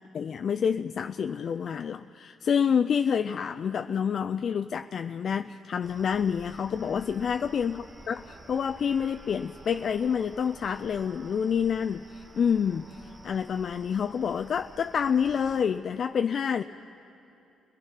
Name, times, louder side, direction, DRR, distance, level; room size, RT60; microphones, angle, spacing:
voice 1, 0.1-13.0 13.2-16.6, left 7 dB, 55° left, 8 dB, 0.4 m, -28 dB
sound 1, 5.8-15.6, right 2 dB, 25° right, 1.7 m, -50 dB
29.0 x 18.5 x 5.7 m, 2.8 s
cardioid pair, 90°, 0 cm